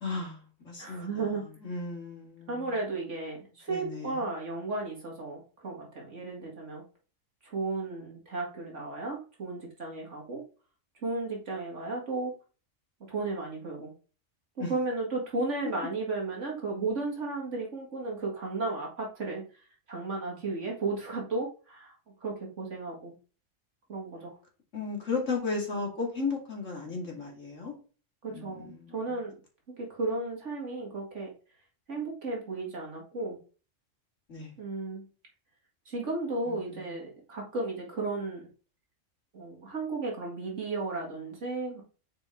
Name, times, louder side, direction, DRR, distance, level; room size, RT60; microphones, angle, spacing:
voice 1, 0.0-1.1 1.6-2.7 3.7-4.2 14.6-14.7 24.7-27.7 28.3-29.0 34.3-34.5 36.5-36.9, left 4 dB, 75° left, -1 dB, 2.8 m, -35 dB
voice 2, 0.8-1.4 2.5-6.8 7.4-10.4 11.0-12.3 13.1-13.9 14.6-19.4 19.9-21.9 22.2-23.1 23.9-24.3 28.2-29.3 29.8-31.3 31.9-33.4 34.6-35.1 35.9-38.4 39.3-41.8, right 3 dB, 65° right, -1 dB, 2.2 m, -34 dB
6.6 x 4.7 x 3.8 m, 0.36 s
omnidirectional pair, 1.3 m